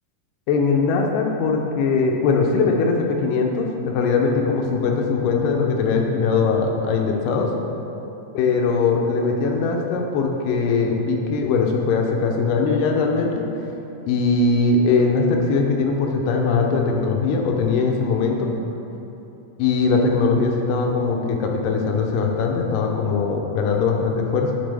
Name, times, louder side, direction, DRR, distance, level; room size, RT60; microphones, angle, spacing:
voice 1, 0.5-7.5 8.3-13.4 14.1-18.5 19.6-24.5, left 4 dB, 90° left, 2 dB, 2.3 m, -21 dB
11.5 x 4.0 x 3.3 m, 2.9 s
omnidirectional pair, 3.8 m